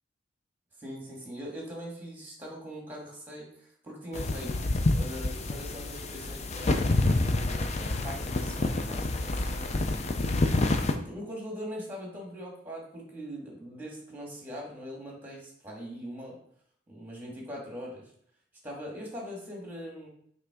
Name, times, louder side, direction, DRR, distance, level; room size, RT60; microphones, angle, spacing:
voice 1, 0.8-7.3 7.8-9.7 10.9-16.4 16.9-18.1 18.6-20.1, equal, 10° right, -2 dB, 1.8 m, -41 dB
sound 1, 4.1-10.9, left 2 dB, 35° left, 0.5 m, -28 dB
5.6 x 3.7 x 4.9 m, 0.64 s
head